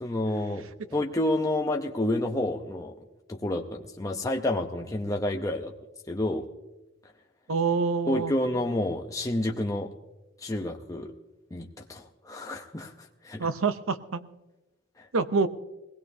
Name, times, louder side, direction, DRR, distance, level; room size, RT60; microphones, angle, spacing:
voice 1, 0.0-2.9 3.3-5.7 6.1-6.4 8.1-9.9 10.4-11.1 11.5-12.9 13.2-13.5 15.0-15.1, left 1 dB, 15° left, 1 dB, 0.7 m, -29 dB
voice 2, 7.5-8.3 13.4-14.2 15.1-15.5, right 4 dB, 80° right, 11 dB, 0.7 m, -26 dB
21.0 x 16.5 x 2.7 m, 1.0 s
head